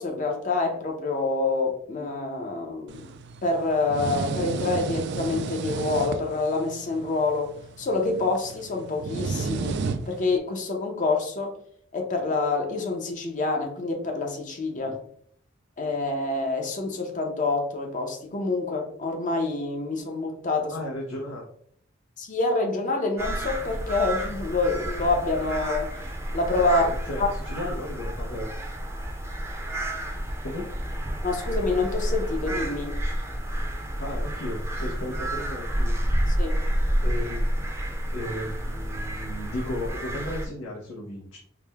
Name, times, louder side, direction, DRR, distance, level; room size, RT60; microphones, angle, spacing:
voice 1, 0.0-3.1 3.4-9.8 10.1-11.5 11.9-15.0 15.8-20.8 22.2-26.1 26.3-26.9 27.2-27.3 27.6-27.7 31.2-33.0 36.3-36.6, left 3 dB, 40° left, 2 dB, 0.7 m, -27 dB
sound 1, 2.9-10.4, right 4 dB, 55° right, 0.3 m, -33 dB
voice 2, 20.7-21.5 26.6-28.4 30.4-30.6 34.0-36.0 37.0-37.7 38.1-41.4, left 1 dB, 80° left, -3 dB, 0.8 m, -35 dB
sound 2, 23.2-40.5, right 1 dB, 15° right, 0.6 m, -29 dB
4.8 x 2.2 x 3.4 m, 0.62 s
head